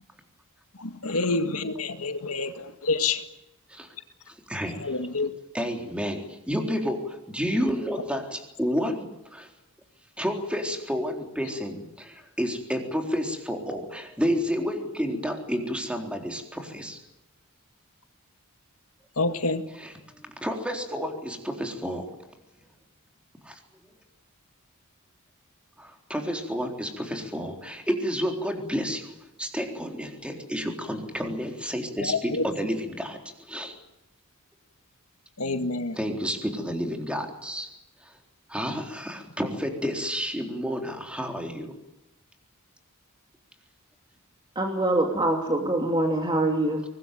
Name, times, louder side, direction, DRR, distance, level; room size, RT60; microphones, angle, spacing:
voice 1, 0.8-3.2 4.8-5.3 19.2-19.6 32.0-32.4 35.4-36.0, left 3 dB, 80° left, 7 dB, 2.1 m, -27 dB
voice 2, 4.3-4.9 5.5-9.5 10.2-17.0 19.8-19.9 20.4-22.3 23.4-23.5 25.8-29.1 29.4-33.7 35.9-37.7 38.0-38.1 38.5-41.7, equal, 5° right, 3 dB, 3.9 m, -30 dB
voice 3, 44.5-46.8, right 1 dB, 20° right, 2 dB, 2.8 m, -24 dB
24.0 x 20.0 x 9.2 m, 0.90 s
head